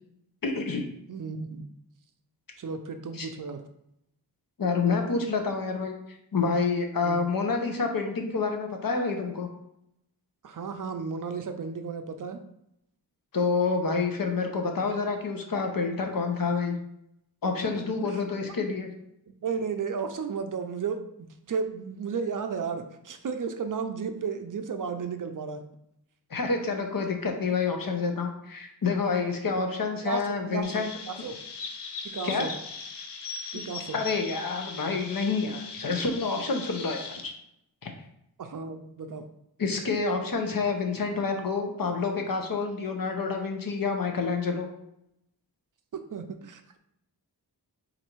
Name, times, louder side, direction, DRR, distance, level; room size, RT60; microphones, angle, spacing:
voice 1, 0.4-0.8 3.1-3.3 4.6-5.9 6.3-9.5 13.3-16.8 17.4-18.9 26.3-30.9 32.2-32.5 33.9-37.3 37.8-37.9 39.6-44.7, left 4 dB, 55° left, 4 dB, 0.8 m, -28 dB
voice 2, 1.1-1.6 2.6-3.6 7.0-7.2 10.4-12.4 17.8-18.1 19.3-25.6 30.0-31.4 32.0-32.5 33.5-34.0 38.4-39.3 45.9-46.8, right 5 dB, 55° right, 7 dB, 0.5 m, -34 dB
Chirp tweet, 30.6-37.2, left 5 dB, 85° left, 0.6 m, -39 dB
4.0 x 2.6 x 4.5 m, 0.78 s
wide cardioid pair, 90°, 40 cm